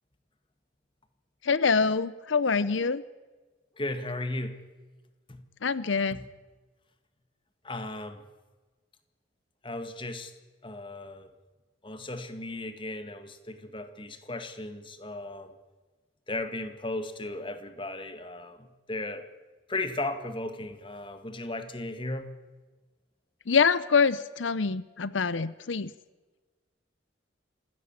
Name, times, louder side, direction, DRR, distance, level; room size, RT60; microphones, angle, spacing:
voice 1, 1.4-3.0 5.6-6.2 23.5-25.9, left 5 dB, 90° left, 17 dB, 0.7 m, -25 dB
voice 2, 3.8-4.6 5.3-5.4 6.1-6.3 7.6-8.2 9.6-10.3 10.6-11.3 11.8-15.5 16.3-19.3 19.7-22.3, left 2 dB, 25° left, 9 dB, 1.9 m, -36 dB
26.0 x 17.0 x 8.8 m, 1.3 s
head